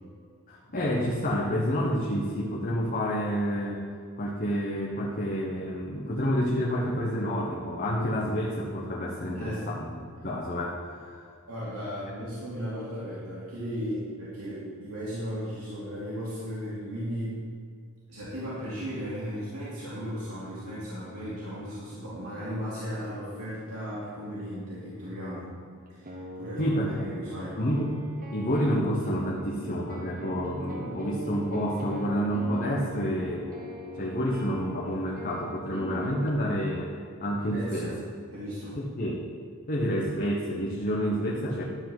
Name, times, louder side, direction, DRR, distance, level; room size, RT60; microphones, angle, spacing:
voice 1, 0.5-3.8 4.2-11.3 26.6-27.0 27.6-27.9 28.3-33.5 34.0-36.9 37.2-37.9 38.8-39.2 39.7-41.6, equal, 40° left, -3 dB, 1.2 m, -29 dB
voice 2, 11.5-17.4 18.1-25.5 25.9-27.6 37.5-38.0 38.3-38.8, equal, 70° right, -9 dB, 2.8 m, -36 dB
sound 1, 25.9-36.3, right 1 dB, 40° right, 1.1 m, -41 dB
12.0 x 4.8 x 7.8 m, 2.3 s
head